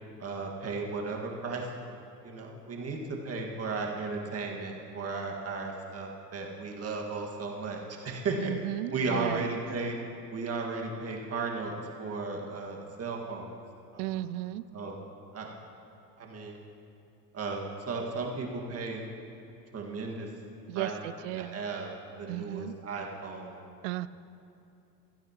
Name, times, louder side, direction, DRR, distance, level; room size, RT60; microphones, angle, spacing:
voice 1, 0.2-1.7 2.2-8.5 8.9-10.0 10.3-13.5 13.9-14.2 14.7-15.0 15.3-15.5 16.2-16.5 17.3-19.0 19.7-20.3 20.8-20.9 21.3-23.6, right 3 dB, 30° right, 0 dB, 1.9 m, -35 dB
voice 2, 8.4-9.5 14.0-14.6 20.7-21.6 22.3-22.7 23.8-24.1, right 15 dB, 50° right, 17 dB, 0.5 m, -35 dB
15.5 x 15.0 x 3.0 m, 2.7 s
hypercardioid pair, 80°, 49 cm